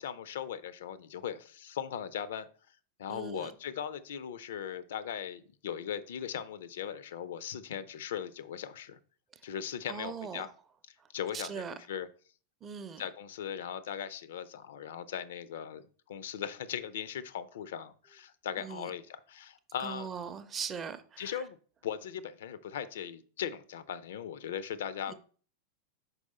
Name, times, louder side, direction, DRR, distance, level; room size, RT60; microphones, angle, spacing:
voice 1, 0.0-2.5 3.0-9.0 9.4-10.5 11.1-12.1 13.0-15.8 16.1-20.1 21.2-21.6 21.8-25.1, left 9 dB, 60° left, 0.4 m, -39 dB
voice 2, 3.1-3.5 9.9-10.5 11.3-11.7 12.6-13.0 18.6-18.9 19.8-21.4 25.1-25.2, right 7 dB, 25° right, 0.5 m, -40 dB
5.4 x 4.6 x 4.0 m
figure-of-eight pair, 90°, 0 cm